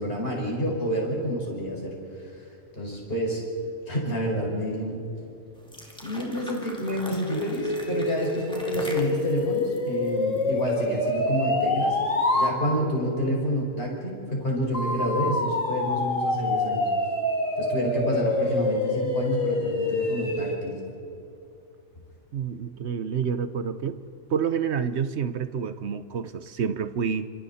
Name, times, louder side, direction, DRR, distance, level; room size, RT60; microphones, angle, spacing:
voice 1, 0.0-2.2 2.8-3.4 3.9-5.0 6.0-12.0 12.3-16.9 17.6-20.8, equal, 45° left, 5.7 m, -29 dB
sound 1, 5.5-10.8, equal, 5° left, 2.5 m, -42 dB
sound 2, 7.3-12.6 14.7-20.6, left 2 dB, 65° left, 3.0 m, -26 dB
voice 2, 22.3-24.0 24.3-27.3, right 7 dB, 60° right, 1.0 m, -28 dB
29.5 x 26.5 x 4.3 m
omnidirectional pair, 1.4 m